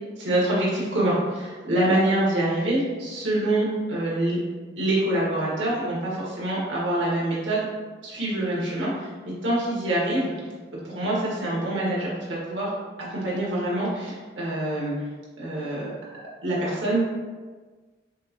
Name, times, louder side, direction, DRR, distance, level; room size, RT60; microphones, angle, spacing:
voice 1, 0.2-4.4 4.8-7.6 8.0-9.1 9.4-10.3 10.8-12.7 13.1-14.9 15.4-15.9 16.4-17.1, right 1 dB, 80° right, -6 dB, 1.5 m, -25 dB
6.3 x 2.1 x 3.0 m, 1.4 s
head